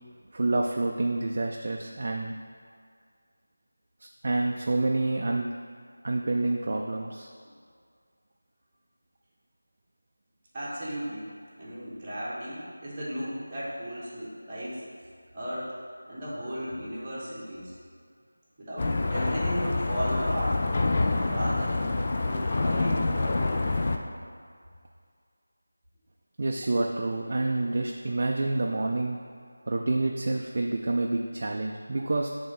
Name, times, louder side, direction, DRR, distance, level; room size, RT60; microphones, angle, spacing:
voice 1, 0.3-2.4 4.2-5.5 6.0-7.3 26.4-29.2 29.7-32.3, right 2 dB, 40° right, 1 dB, 0.3 m, -28 dB
voice 2, 10.5-11.3 11.6-14.8 15.3-15.8 16.1-17.7 18.6-20.6 21.2-21.8 22.2-23.5, equal, 15° right, -11 dB, 1.3 m, -35 dB
sound 1, 18.8-24.0, left 2 dB, 30° left, 0.4 m, -26 dB
5.9 x 3.4 x 5.4 m, 2.2 s
figure-of-eight pair, 175°, 0 cm